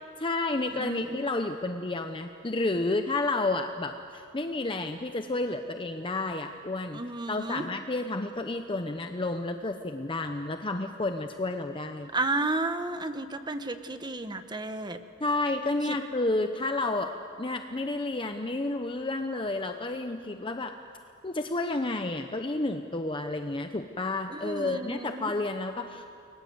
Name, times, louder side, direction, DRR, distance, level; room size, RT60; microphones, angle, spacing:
voice 1, 0.2-7.0 7.3-12.1 15.2-17.1 17.4-20.8 21.2-26.1, left 2 dB, 25° left, 6 dB, 0.8 m, -31 dB
voice 2, 0.7-1.3 6.9-7.6 12.1-15.0 15.8-16.0 24.3-25.3, right 2 dB, 20° right, 9 dB, 1.2 m, -32 dB
30.0 x 22.5 x 8.0 m, 2.5 s
head